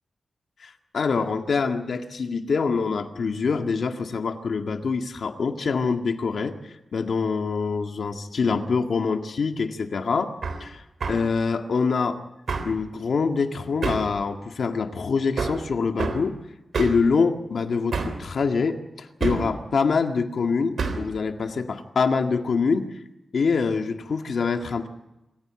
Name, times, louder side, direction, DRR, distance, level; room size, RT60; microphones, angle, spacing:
voice 1, 0.6-10.3 10.6-10.8 11.1-12.2 12.6-16.4 16.8-22.9 23.3-24.9, left 5 dB, 70° left, 5 dB, 1.9 m, -25 dB
Hammer, 10.4-10.6 11.0-11.3 12.5-12.8 13.8-14.1 15.4-15.6 16.0-16.2 16.7-17.1 17.9-18.2 19.2-19.5 20.8-21.1, right 4 dB, 75° right, 3.4 m, -27 dB
26.0 x 15.5 x 8.8 m, 0.99 s
wide cardioid pair, 125°, 0 cm